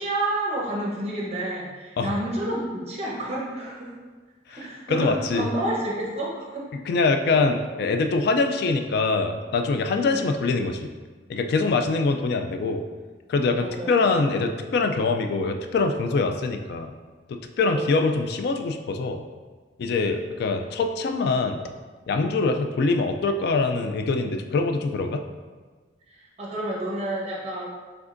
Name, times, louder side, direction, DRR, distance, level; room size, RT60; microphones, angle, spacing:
voice 1, 0.0-4.0 4.5-6.6 10.1-10.2 13.6-13.9 17.6-17.8 26.1-27.7, right 1 dB, 35° right, -3 dB, 1.0 m, -30 dB
voice 2, 4.9-5.5 6.7-10.9 11.3-12.8 13.3-16.9 17.3-19.2 19.8-21.6 22.1-25.2, left 3 dB, 60° left, 6 dB, 0.3 m, -24 dB
4.9 x 3.4 x 2.5 m, 1.4 s
head